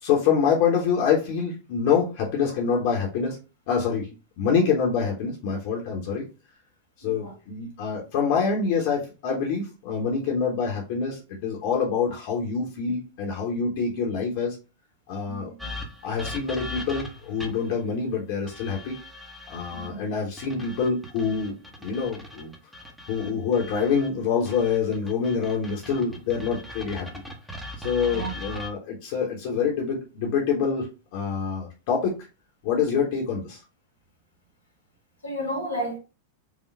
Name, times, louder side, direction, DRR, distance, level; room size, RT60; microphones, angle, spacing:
voice 1, 0.0-3.4 3.7-4.1 4.4-6.2 7.0-14.6 15.1-15.5 16.0-18.9 19.5-22.5 23.1-27.1 27.8-32.1 32.6-33.6, left 6 dB, 50° left, 1.1 m, -26 dB
voice 2, 7.0-7.4 15.3-15.6 19.7-20.0 23.2-23.4 28.1-28.3 35.2-36.0, right 1 dB, 80° left, 1.8 m, -32 dB
sound 1, 15.6-17.7 18.5-19.9 20.4-24.1 24.5-28.7, left 1 dB, 5° right, 1.1 m, -39 dB
4.9 x 2.4 x 3.3 m
figure-of-eight pair, 90°, 0 cm